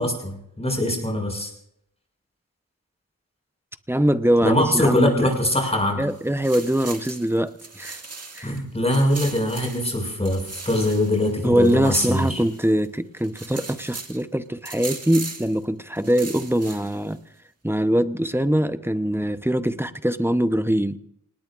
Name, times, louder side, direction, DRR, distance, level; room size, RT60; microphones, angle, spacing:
voice 1, 0.0-1.5 4.4-6.0 8.4-12.4, left 1 dB, 15° left, 1 dB, 6.7 m, -22 dB
voice 2, 3.9-5.3 6.0-8.0 8.3-8.6 11.4-17.2 17.6-21.0, right 1 dB, 5° right, 11 dB, 0.8 m, -23 dB
sound 1, 6.1-8.6 8.9-12.9 13.2-14.2 14.7-15.6 16.0-17.1, right 3 dB, 45° right, 2.0 m, -38 dB
28.0 x 19.5 x 2.5 m, 0.73 s
wide cardioid pair, 65°, 36 cm